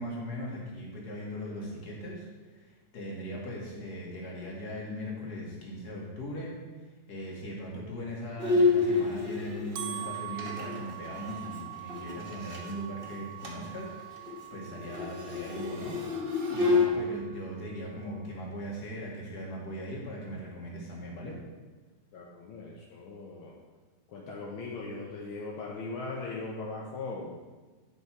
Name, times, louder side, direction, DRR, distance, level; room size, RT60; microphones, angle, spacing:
voice 1, 0.0-6.5 6.8-21.4, equal, 50° left, -3 dB, 2.4 m, -39 dB
Bowed string instrument, 8.4-12.7 13.0-13.1 13.4-13.7 14.0-16.9, left 4 dB, 35° right, 1.0 m, -29 dB
sound 1, 9.0-18.4, right 13 dB, 80° right, 0.8 m, -44 dB
voice 2, 22.1-23.5 24.1-27.3, left 3 dB, 75° left, -3 dB, 1.8 m, -39 dB
10.0 x 5.6 x 4.5 m, 1.3 s
omnidirectional pair, 2.3 m